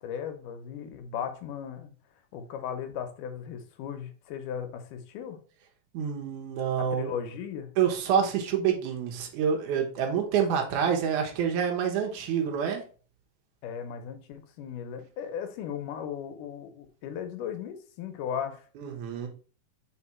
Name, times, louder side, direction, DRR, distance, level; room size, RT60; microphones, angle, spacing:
voice 1, 0.0-1.9 2.3-5.4 6.8-7.7 13.6-18.6, left 8 dB, 85° left, 2.4 m, -36 dB
voice 2, 5.9-7.1 7.8-12.8 18.8-19.3, right 7 dB, 75° right, 2.5 m, -27 dB
4.7 x 4.7 x 4.3 m
omnidirectional pair, 3.6 m